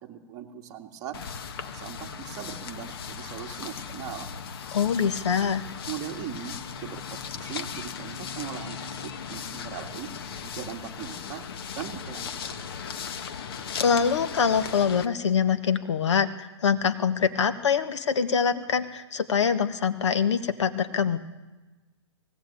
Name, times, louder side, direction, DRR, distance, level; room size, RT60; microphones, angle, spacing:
voice 1, 0.0-1.2 1.6-4.3 5.9-6.6 6.8-10.1 10.4-11.4 11.7-12.6, right 10 dB, 25° right, 2 dB, 1.9 m, -39 dB
sound 1, 1.1-15.1, left 6 dB, 55° left, 1.3 m, -37 dB
voice 2, 4.7-5.7 13.8-21.2, left 6 dB, 75° left, 10 dB, 1.4 m, -24 dB
18.5 x 17.5 x 8.6 m, 1.2 s
hypercardioid pair, 150°, 15 cm